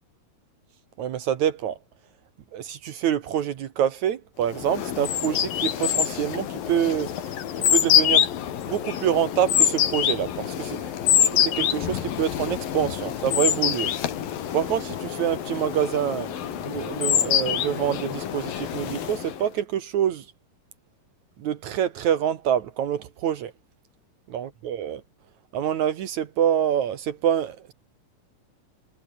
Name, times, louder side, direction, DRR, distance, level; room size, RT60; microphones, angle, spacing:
voice 1, 1.0-1.8 2.5-7.1 7.7-8.3 8.7-10.9 11.3-13.9 14.5-20.2 21.4-23.5 24.3-25.0 25.5-27.7, right 9 dB, 65° right, 2.4 m, -26 dB
sound 1, 4.5-19.5, left 10 dB, 85° left, 3.9 m, -25 dB
omnidirectional pair, 4.0 m